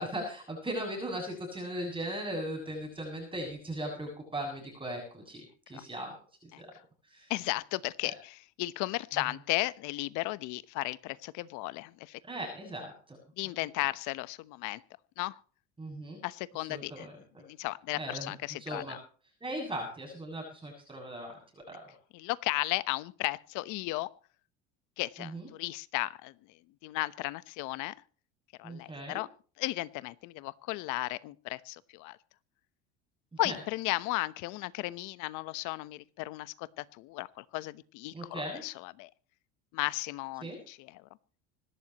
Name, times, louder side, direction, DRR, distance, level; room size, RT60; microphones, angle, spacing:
voice 1, 0.0-6.1 6.6-6.7 7.1-7.3 12.3-13.2 15.8-16.2 16.6-17.2 18.0-18.3 18.6-19.0 19.4-21.4 21.7-21.8 25.2-25.5 28.6-29.2 33.4-33.6 38.1-38.6 40.4-40.6, right 1 dB, 15° right, 0 dB, 7.3 m, -38 dB
voice 2, 7.3-12.2 13.4-14.8 15.2-15.4 16.2-17.1 17.4-19.0 22.1-24.1 25.0-26.3 26.8-27.9 28.6-29.3 29.6-32.2 33.4-39.1 39.7-41.0, left 20 dB, 65° left, 16 dB, 1.1 m, -35 dB
25.5 x 12.5 x 3.0 m, 0.41 s
supercardioid pair, 90°, 33 cm